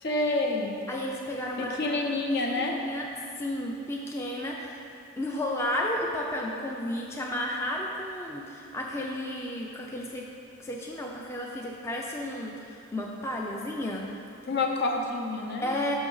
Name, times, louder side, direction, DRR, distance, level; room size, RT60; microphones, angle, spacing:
voice 1, 0.0-0.8 1.6-2.7 14.5-15.7, left 2 dB, 55° left, 1 dB, 0.7 m, -28 dB
voice 2, 0.9-2.0 2.4-3.1 3.4-4.8 5.2-10.3 10.6-14.2 15.6-16.0, left 1 dB, 15° left, -2 dB, 0.4 m, -33 dB
6.2 x 6.0 x 3.9 m, 2.5 s
head